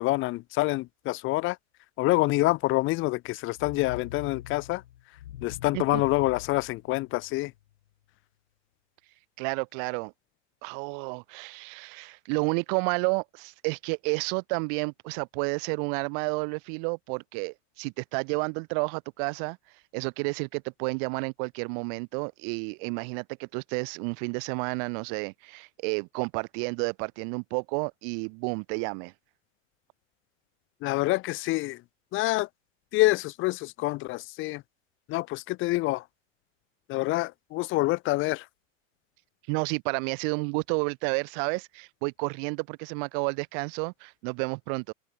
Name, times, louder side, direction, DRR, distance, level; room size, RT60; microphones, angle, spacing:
voice 1, 0.0-1.6 2.0-4.8 5.4-7.5 30.8-31.8 32.1-32.5 32.9-34.6 35.1-36.0 36.9-38.4, left 20 dB, 30° left, 2.0 m, -26 dB
sound 1, 3.5-7.6, left 12 dB, 85° left, 2.5 m, -43 dB
voice 2, 9.4-10.1 10.6-19.6 19.9-29.1 39.5-44.9, right 40 dB or more, 40° right, 2.6 m, -31 dB
open air
supercardioid pair, 155°, 38 cm